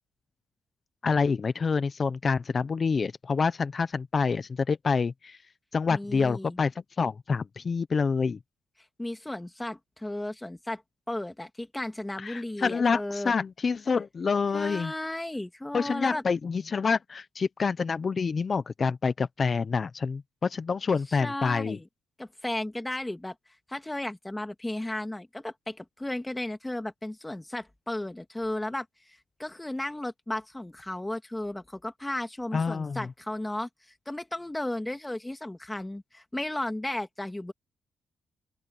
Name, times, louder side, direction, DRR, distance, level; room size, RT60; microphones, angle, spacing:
voice 1, 1.0-5.4 5.7-6.7 7.0-8.4 12.2-14.9 15.7-21.8 32.5-33.1, left 5 dB, 35° left, 0.7 m, -27 dB
voice 2, 5.9-6.6 9.0-10.8 11.1-13.3 14.5-16.2 21.1-21.9 22.2-23.4 23.7-37.5, left 1 dB, 10° left, 2.1 m, -34 dB
open air
cardioid pair, 105°, 0 cm